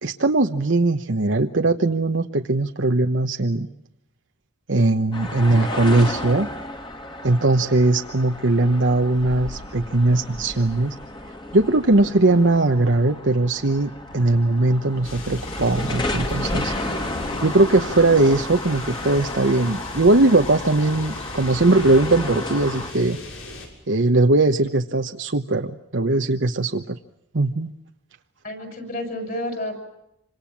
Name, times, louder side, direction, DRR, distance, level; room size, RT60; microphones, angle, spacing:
voice 1, 0.0-3.7 4.7-6.5 7.2-10.9 11.5-16.7 17.4-23.2 23.9-27.0 27.3-27.7, right 2 dB, 70° right, 4 dB, 1.1 m, -20 dB
sound 1, 5.1-22.9, left 1 dB, 25° left, 2.3 m, -32 dB
sound 2, 15.0-23.7, left 1 dB, 90° left, 6.5 m, -37 dB
voice 2, 28.4-29.8, left 1 dB, 45° left, 6 dB, 6.6 m, -30 dB
27.5 x 25.5 x 7.4 m, 0.82 s
head